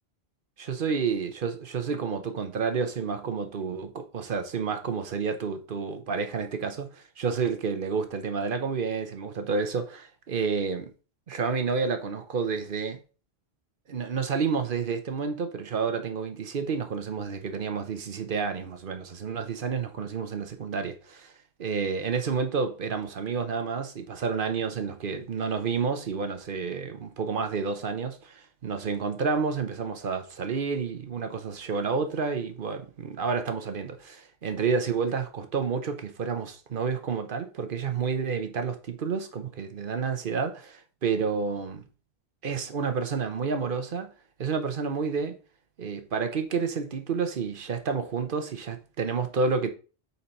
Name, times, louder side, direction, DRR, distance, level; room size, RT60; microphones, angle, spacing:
voice 1, 0.6-10.9 11.3-13.0 13.9-21.3 21.6-41.8 42.4-44.1 44.4-45.4 45.8-49.7, right 5 dB, 55° right, 1.0 m, -30 dB
4.4 x 4.1 x 5.2 m
omnidirectional pair, 1.1 m